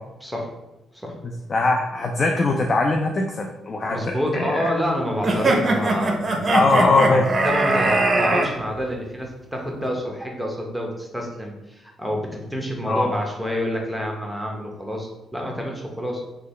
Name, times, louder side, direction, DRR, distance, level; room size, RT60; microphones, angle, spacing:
voice 1, 0.2-0.5 0.9-1.2 3.9-16.2, equal, ahead, 0 dB, 0.8 m, -28 dB
voice 2, 1.5-4.7 6.5-7.2 12.9-13.1, left 3 dB, 40° left, 2 dB, 0.3 m, -21 dB
sound 1, 5.2-8.5, right 2 dB, 40° right, 0.5 m, -21 dB
3.7 x 2.2 x 3.2 m, 0.94 s
cardioid pair, 90°, 0 cm